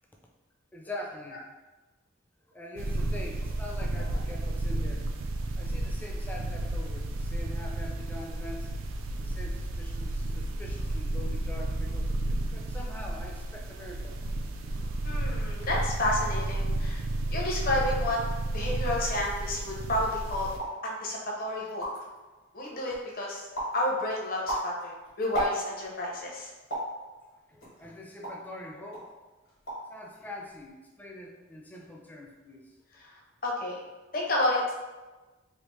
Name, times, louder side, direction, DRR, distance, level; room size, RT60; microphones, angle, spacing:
voice 1, 0.7-1.4 2.5-5.1 5.6-8.7 9.2-12.1 12.5-14.2 27.5-29.1 29.9-32.6, left 1 dB, 10° left, -1 dB, 0.3 m, -43 dB
sound 1, 2.8-20.6, right 1 dB, 80° right, 0.3 m, -32 dB
voice 2, 15.0-17.0 17.3-18.2 18.5-20.5 20.8-21.9 22.5-23.5 23.7-26.5 32.9-33.1 33.4-33.8 34.1-34.6, left 1 dB, 45° left, -3 dB, 0.7 m, -30 dB
sound 2, 20.6-20.9 21.4-21.5 21.6-22.2 22.7-23.1 23.5-23.8 24.2-25.9 26.7-27.0 27.6-28.5 28.9-29.1 29.4-29.9 30.2-30.7, right 1 dB, 70° left, 1.2 m, -34 dB
3.3 x 2.4 x 3.1 m, 1.2 s
head